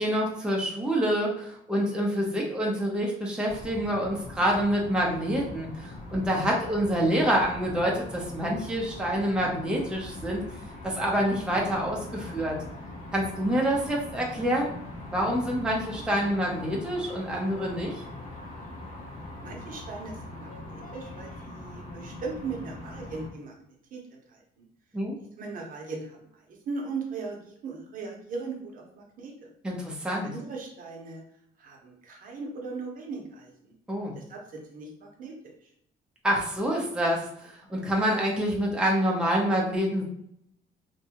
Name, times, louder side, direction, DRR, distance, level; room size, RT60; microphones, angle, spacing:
voice 1, 0.0-10.4 10.8-12.6 13.1-14.7 15.1-18.0 24.9-25.2 29.6-30.3 33.9-34.1 36.2-40.0, equal, 5° right, -2 dB, 0.6 m, -27 dB
sound 1, 3.5-23.3, left 2 dB, 55° left, 0.8 m, -41 dB
voice 2, 19.4-23.5 23.9-24.6 25.4-29.5 30.2-31.2 31.6-33.7 34.1-35.7, right 4 dB, 55° right, 0 dB, 0.7 m, -39 dB
2.6 x 2.3 x 2.9 m, 0.73 s
cardioid pair, 110°, 17 cm